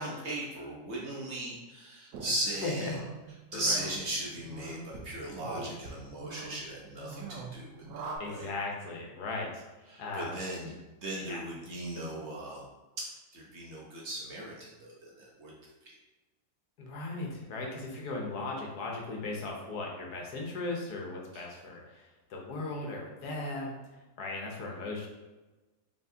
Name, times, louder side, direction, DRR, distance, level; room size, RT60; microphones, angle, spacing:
voice 1, 0.0-3.0 3.5-8.5 9.9-10.7 11.0-12.6 13.3-15.5 21.3-21.4, right 1 dB, 55° right, -4 dB, 0.9 m, -37 dB
sound 1, 2.1-8.2, right 3 dB, 75° right, 1.1 m, -44 dB
voice 2, 2.6-2.9 3.5-3.9 8.2-10.4 10.6-10.7 11.2-11.4 16.8-23.8 24.2-25.1, left 2 dB, 80° left, -1 dB, 1.4 m, -37 dB
4.3 x 3.5 x 2.7 m, 1.2 s
omnidirectional pair, 1.7 m